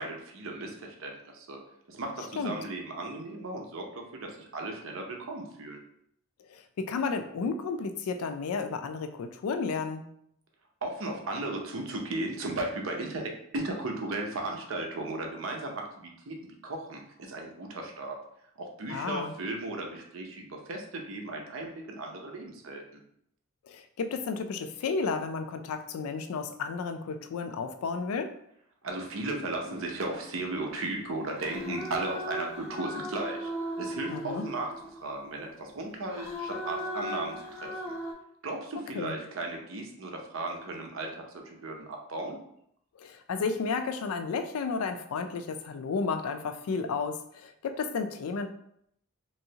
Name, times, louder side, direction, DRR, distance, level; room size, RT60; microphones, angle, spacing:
voice 1, 0.0-1.6 1.9-5.8 10.8-18.2 18.6-23.0 28.8-33.5 33.8-37.7 38.4-41.2 41.4-42.4, right 2 dB, 65° right, 2 dB, 0.6 m, -36 dB
voice 2, 6.5-10.0 18.9-19.3 23.7-28.3 34.1-34.5 38.9-39.2 43.0-48.5, left 4 dB, 80° left, 8 dB, 0.3 m, -32 dB
sound 1, 29.3-30.8 31.3-35.2 36.1-38.1, equal, 15° left, 0.6 m, -38 dB
3.1 x 2.7 x 2.8 m, 0.71 s
head